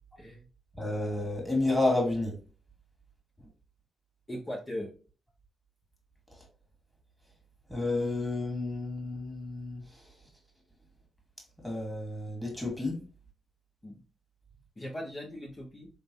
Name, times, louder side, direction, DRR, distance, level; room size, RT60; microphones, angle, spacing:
voice 1, 0.8-2.4 7.7-9.8 11.6-13.0, left 2 dB, ahead, 2.3 m, -30 dB
voice 2, 4.3-4.9 13.8-14.0 14.8-15.9, equal, 30° left, 1.6 m, -39 dB
3.8 x 3.7 x 2.7 m
supercardioid pair, 50°, 0 cm